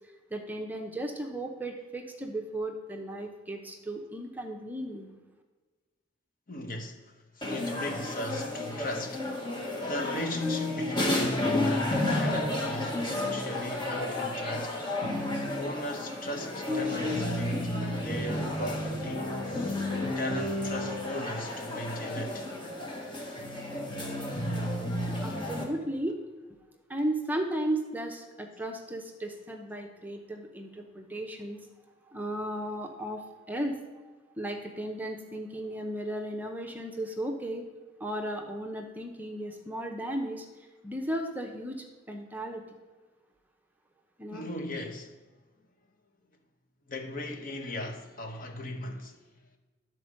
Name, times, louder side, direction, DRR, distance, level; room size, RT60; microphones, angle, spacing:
voice 1, 0.3-5.1 25.2-26.2 26.9-31.6 32.1-33.8 34.4-37.6 38.0-42.8 44.2-44.5, right 1 dB, 10° right, 0.8 m, -35 dB
voice 2, 6.5-9.4 9.8-14.8 15.5-19.9 20.1-22.5 44.3-45.1 46.9-49.3, left 1 dB, 45° left, 1.1 m, -38 dB
sound 1, 7.4-25.6, left 1 dB, 25° left, 1.6 m, -31 dB
11.5 x 4.4 x 6.4 m
head